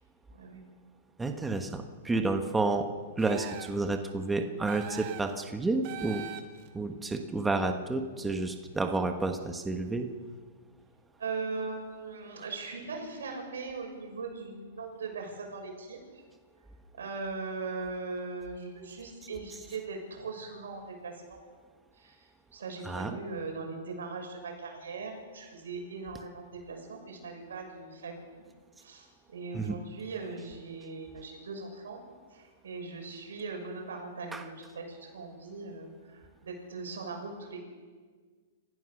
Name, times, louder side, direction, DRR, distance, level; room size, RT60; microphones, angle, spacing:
voice 1, 1.2-2.9 3.2-6.3 6.7-10.1 22.8-23.2 29.5-29.8 34.3-34.4, right 3 dB, 10° right, 5 dB, 1.3 m, -30 dB
sound 1, 3.2-3.9 4.7-5.4 5.8-6.7, right 12 dB, 45° right, 1.9 m, -42 dB
voice 2, 11.2-16.0 17.0-21.4 22.0-28.4 28.8-32.0 32.3-37.6, right 4 dB, 90° right, 2 dB, 6.6 m, -40 dB
28.0 x 15.0 x 6.6 m, 1.5 s
hypercardioid pair, 140°, 0 cm